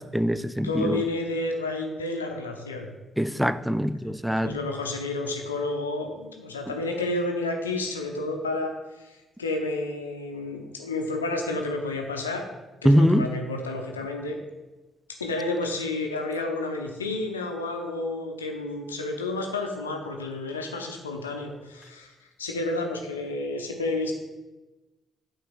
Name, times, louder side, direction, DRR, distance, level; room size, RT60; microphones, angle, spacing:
voice 1, 0.0-1.0 3.2-4.6 12.8-13.3, equal, 5° right, 13 dB, 0.4 m, -23 dB
voice 2, 0.6-2.9 4.4-12.4 12.8-14.4 15.2-22.1 22.4-24.1, left 2 dB, 85° left, 3 dB, 0.7 m, -30 dB
8.6 x 3.3 x 6.2 m, 1.1 s
figure-of-eight pair, 40°, 0 cm